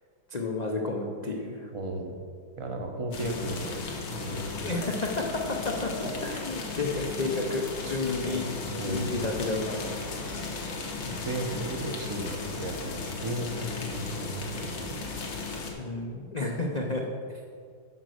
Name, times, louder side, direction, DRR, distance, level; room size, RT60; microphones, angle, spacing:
voice 1, 0.3-1.7 4.6-9.8 10.5-11.0 13.6-13.7 15.8-17.1, left 3 dB, 65° left, 0 dB, 0.4 m, -31 dB
voice 2, 1.7-2.2 2.6-4.6 8.2-8.4 8.7-9.1 11.1-15.0, right 1 dB, 30° right, 3 dB, 0.5 m, -35 dB
sound 1, 3.1-15.7, left 3 dB, 90° left, 1.9 m, -36 dB
9.7 x 5.2 x 6.4 m, 2.2 s
omnidirectional pair, 1.9 m